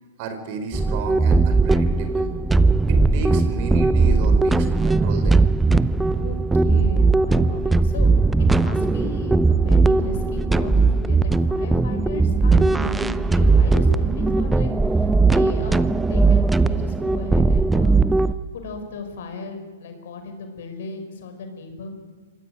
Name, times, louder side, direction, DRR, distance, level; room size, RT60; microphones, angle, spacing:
voice 1, 0.2-2.3 2.9-5.5, right 4 dB, 45° right, 7 dB, 4.9 m, -33 dB
sound 1, 0.7-18.3, right 3 dB, 5° right, 0.7 m, -18 dB
voice 2, 6.2-8.2 8.5-21.9, left 2 dB, 60° left, 6 dB, 5.9 m, -36 dB
26.0 x 18.0 x 9.0 m, 1.4 s
hypercardioid pair, 120°, 0 cm